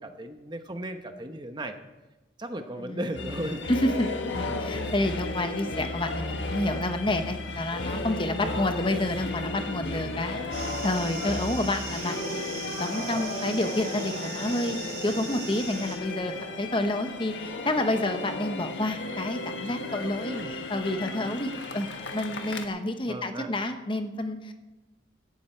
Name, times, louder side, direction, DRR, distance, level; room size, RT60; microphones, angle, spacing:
voice 1, 0.0-1.7 2.4-3.6 4.5-4.6 8.4-8.6 13.1-13.5 20.3-20.5 23.1-23.5, right 1 dB, 25° right, 7 dB, 0.9 m, -36 dB
voice 2, 2.8-3.4 3.7-24.5, left 1 dB, 25° left, 7 dB, 1.0 m, -29 dB
sound 1, 3.1-22.7, left 2 dB, 80° left, 1.4 m, -34 dB
sound 2, 10.5-16.0, right 4 dB, 55° right, 4.1 m, -39 dB
17.5 x 11.5 x 4.5 m, 1.1 s
head